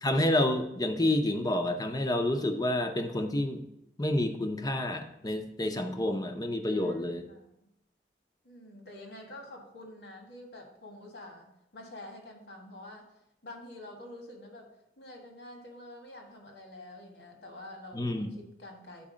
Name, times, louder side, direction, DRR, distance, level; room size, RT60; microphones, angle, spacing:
voice 1, 0.0-3.6 4.0-7.2 17.9-18.3, left 1 dB, 20° left, 6 dB, 0.7 m, -29 dB
voice 2, 6.7-7.5 8.4-13.0 13.4-14.7 15.0-19.1, left 1 dB, 70° left, 2 dB, 1.7 m, -47 dB
8.6 x 4.7 x 5.1 m, 0.84 s
head